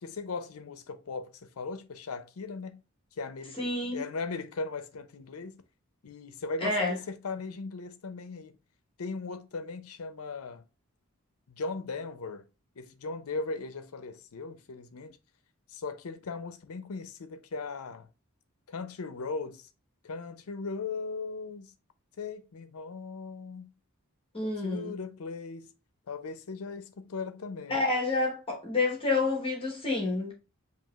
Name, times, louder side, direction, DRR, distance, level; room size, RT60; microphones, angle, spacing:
voice 1, 0.0-2.8 3.2-5.6 6.0-8.5 9.0-10.6 11.5-12.5 12.8-15.2 15.7-18.1 18.7-19.7 20.0-21.7 22.2-23.7 24.6-25.7 26.1-27.8, left 4 dB, 80° left, 0.6 m, -38 dB
voice 2, 3.6-4.0 6.6-7.0 24.3-24.9 27.7-30.3, left 3 dB, 25° left, 1.1 m, -29 dB
7.3 x 2.9 x 2.3 m
head